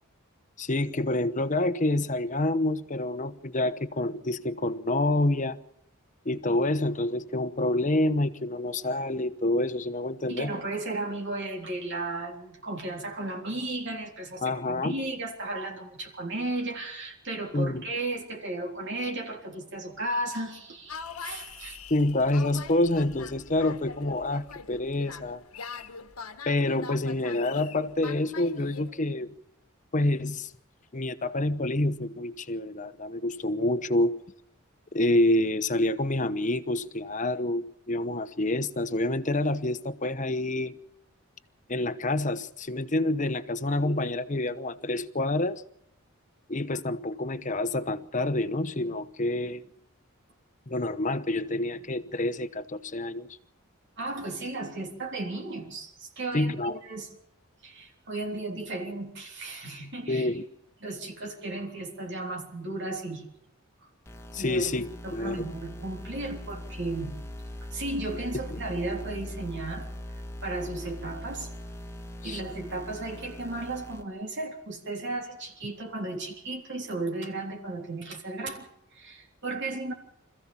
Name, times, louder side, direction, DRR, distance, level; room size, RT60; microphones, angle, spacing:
voice 1, 0.6-5.6 6.2-10.5 14.4-15.0 17.5-17.8 21.9-25.4 26.5-29.3 29.9-30.5 30.9-34.2 34.9-40.8 41.7-45.6 46.5-49.6 50.7-53.3 56.3-56.8 60.1-60.4 64.3-65.4 68.5-68.6 72.2-72.4, left 1 dB, 35° left, 1.0 m, -27 dB
voice 2, 10.3-21.0 21.2-21.8 54.0-57.1 57.6-60.3 60.8-63.3 63.8-63.9 64.4-64.6 65.0-67.2 67.7-69.9 70.4-71.5 72.2-79.9, right 2 dB, 55° right, 3.5 m, -35 dB
sound 1, 20.9-28.9, left 5 dB, 90° left, 1.5 m, -42 dB
sound 2, 64.1-74.0, left 1 dB, 10° left, 1.8 m, -41 dB
26.0 x 15.0 x 7.3 m
head